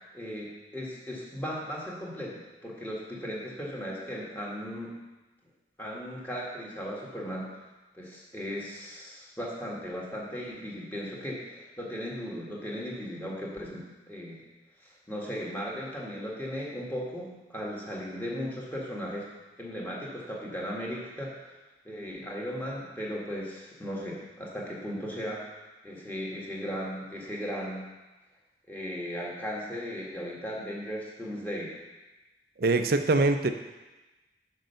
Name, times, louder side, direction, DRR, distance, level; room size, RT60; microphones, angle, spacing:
voice 1, 0.1-4.9 5.8-7.5 7.9-14.4 14.8-19.3 19.6-21.6 21.8-25.4 25.8-27.8 28.7-31.8, equal, 10° left, -5 dB, 1.6 m, -37 dB
voice 2, 32.6-33.5, right 3 dB, 55° right, 8 dB, 0.5 m, -23 dB
6.4 x 5.3 x 6.7 m, 1.1 s
head